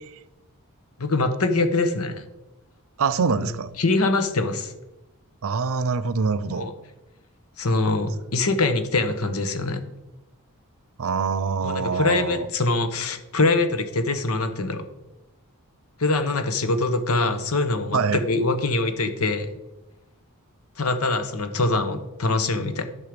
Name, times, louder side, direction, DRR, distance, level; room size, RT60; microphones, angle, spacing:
voice 1, 1.0-2.2 3.4-3.5 3.8-4.7 6.5-6.7 7.6-9.8 11.6-14.8 16.0-19.5 20.8-22.8, left 3 dB, 75° left, 1.1 m, -23 dB
voice 2, 3.0-3.7 5.4-6.7 11.0-12.5 17.9-18.2, right 5 dB, 65° right, 0.6 m, -24 dB
11.0 x 6.6 x 5.2 m
head